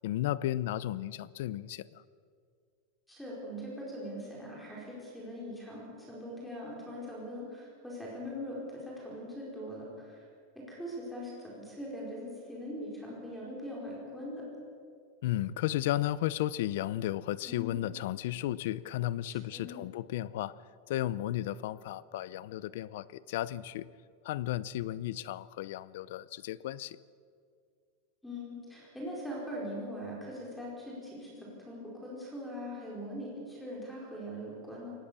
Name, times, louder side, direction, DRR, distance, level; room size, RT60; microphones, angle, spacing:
voice 1, 0.0-2.0 15.2-20.6 20.9-23.9 24.2-27.0, left 13 dB, 60° left, 19 dB, 0.7 m, -34 dB
voice 2, 3.1-10.2 10.5-14.5 17.4-17.9 19.3-19.8 28.2-34.9, equal, ahead, -4 dB, 4.8 m, -41 dB
23.0 x 18.5 x 6.9 m, 2.2 s
supercardioid pair, 170°, 0 cm